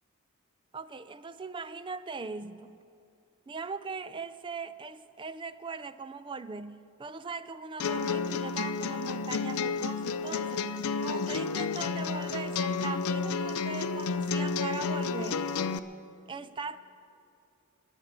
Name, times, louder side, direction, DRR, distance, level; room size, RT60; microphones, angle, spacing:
voice 1, 0.7-2.8 3.5-10.7 11.0-15.5 16.3-16.8, right 4 dB, 20° right, 0.4 m, -40 dB
sound 1, 7.8-15.8, left 4 dB, 85° left, 0.6 m, -31 dB
22.5 x 8.2 x 6.7 m
head